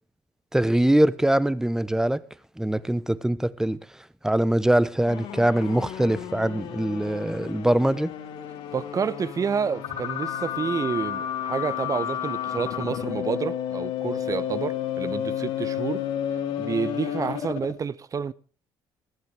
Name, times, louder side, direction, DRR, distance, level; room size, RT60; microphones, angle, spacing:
voice 1, 0.5-2.2 2.6-3.8 4.2-8.1, right 1 dB, 5° right, 1.0 m, -22 dB
sound 1, 5.1-17.8, left 10 dB, 85° left, 2.2 m, -31 dB
voice 2, 8.7-16.0 16.6-18.3, right 6 dB, 40° right, 0.9 m, -29 dB
20.5 x 14.5 x 3.5 m
cardioid pair, 90°, 9 cm